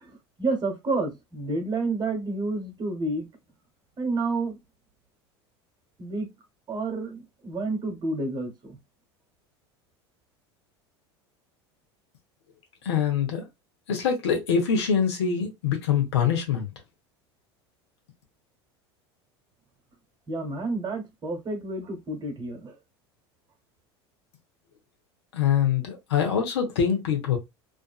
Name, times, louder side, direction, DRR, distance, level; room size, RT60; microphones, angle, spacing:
voice 1, 0.0-3.3 4.0-4.6 6.0-6.3 6.7-8.8 20.3-22.7, right 3 dB, 30° right, 1.0 m, -30 dB
voice 2, 12.8-13.5 13.9-16.7 25.3-27.4, left 7 dB, 85° left, 0.9 m, -24 dB
2.5 x 2.5 x 2.3 m
hypercardioid pair, 85°, 14 cm